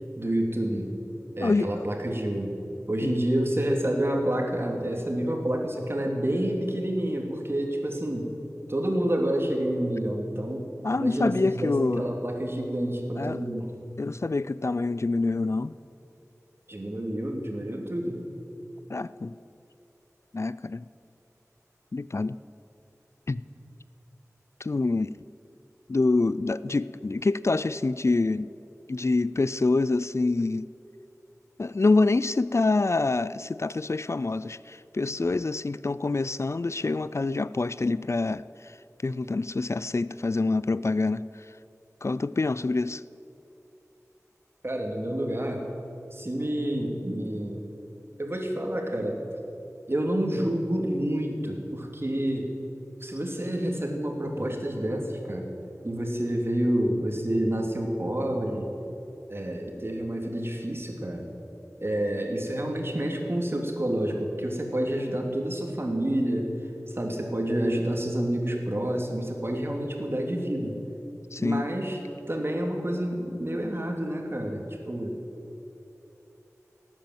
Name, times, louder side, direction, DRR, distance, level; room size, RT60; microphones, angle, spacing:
voice 1, 0.2-0.9 1.4-2.6 2.9-8.3 8.7-10.7 11.0-13.7 16.7-18.2 44.6-45.6 46.1-47.7 48.2-49.2 49.9-52.5 53.0-55.5 55.8-58.7 59.3-61.3 61.8-66.5 66.9-70.8 71.4-72.0 72.3-75.2, right 1 dB, 45° right, 1 dB, 2.6 m, -28 dB
voice 2, 1.4-1.9 3.0-3.1 10.8-12.1 13.2-13.4 14.0-15.7 18.9-19.3 20.3-20.8 21.9-22.4 23.3-23.4 24.6-25.2 25.9-28.5 28.9-30.7 31.6-38.8 39.0-41.2 42.0-43.0 71.3-71.7, left 3 dB, 50° left, 17 dB, 0.3 m, -26 dB
18.0 x 9.0 x 7.8 m, 2.9 s
wide cardioid pair, 50°, 6 cm